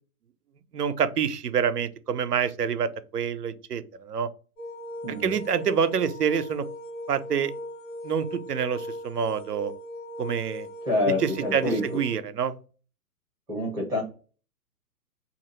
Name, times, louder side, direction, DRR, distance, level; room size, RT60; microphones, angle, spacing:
voice 1, 0.7-4.3 5.2-6.6 7.1-7.5 8.0-9.7 10.2-10.7 11.1-12.6, right 7 dB, 85° right, 12 dB, 0.5 m, -27 dB
sound 1, 4.6-12.1, left 1 dB, 60° left, 1.1 m, -39 dB
voice 2, 5.0-5.3 10.8-11.8 13.5-14.0, left 2 dB, 5° right, -8 dB, 0.4 m, -26 dB
2.7 x 2.5 x 2.9 m, 0.37 s
figure-of-eight pair, 120°, 46 cm